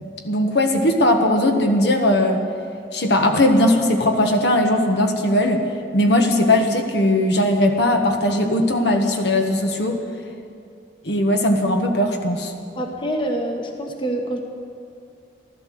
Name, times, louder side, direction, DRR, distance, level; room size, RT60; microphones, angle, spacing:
voice 1, 0.2-2.4 2.9-5.7 5.9-10.0 11.0-12.5, left 1 dB, 65° left, 4 dB, 1.4 m, -18 dB
voice 2, 12.8-14.4, right 1 dB, 25° left, 3 dB, 1.3 m, -26 dB
15.5 x 12.5 x 7.6 m, 2.4 s
head